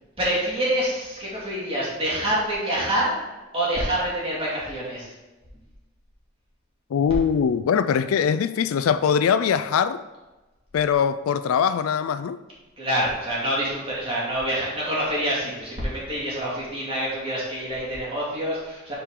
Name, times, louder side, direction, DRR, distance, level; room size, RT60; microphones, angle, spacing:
voice 1, 0.2-3.2 3.5-5.1 12.8-18.9, right 1 dB, 25° right, 2.3 m, -26 dB
voice 2, 6.9-10.0 10.7-12.4, left 7 dB, 85° left, 0.3 m, -22 dB
8.0 x 4.6 x 3.7 m
head